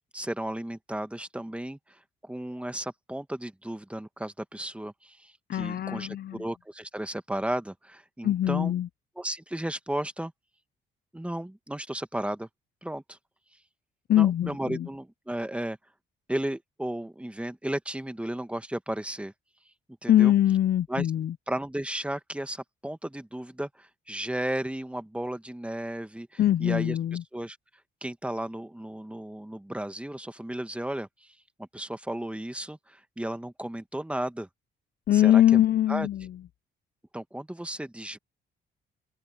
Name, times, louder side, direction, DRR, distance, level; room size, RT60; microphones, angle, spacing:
voice 1, 0.1-8.7 9.2-10.3 11.1-12.5 12.8-13.2 14.1-15.8 16.3-19.3 20.0-20.3 20.9-21.1 21.5-27.0 27.3-27.6 28.0-34.5 35.1-35.4 35.9-36.1 37.1-38.2, right 1 dB, 5° right, 1.6 m, -34 dB
voice 2, 5.5-6.4 8.2-8.9 14.1-14.9 20.1-21.3 26.4-27.2 35.1-36.3, left 12 dB, 50° left, 0.5 m, -23 dB
open air
cardioid pair, 90°, 20 cm